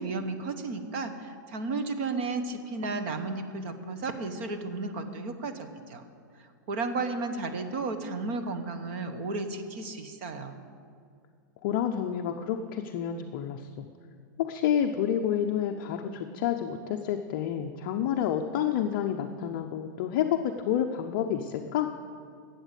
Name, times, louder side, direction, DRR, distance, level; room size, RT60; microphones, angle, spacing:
voice 1, 0.0-6.0 6.7-10.6, right 3 dB, 40° right, 8 dB, 1.0 m, -33 dB
voice 2, 11.6-13.9 14.4-21.9, left 9 dB, 35° left, 4 dB, 0.5 m, -29 dB
12.5 x 8.1 x 8.1 m, 2.2 s
supercardioid pair, 170°, 11 cm